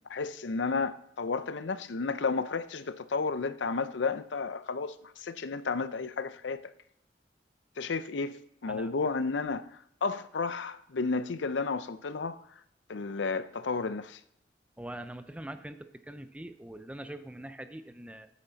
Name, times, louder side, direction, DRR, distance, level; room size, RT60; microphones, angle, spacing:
voice 1, 0.1-6.7 7.8-8.4 8.6-12.4 12.9-14.2, left 4 dB, 85° left, 0.6 m, -32 dB
voice 2, 14.8-18.3, right 1 dB, 5° right, 0.5 m, -43 dB
14.5 x 8.4 x 4.0 m
head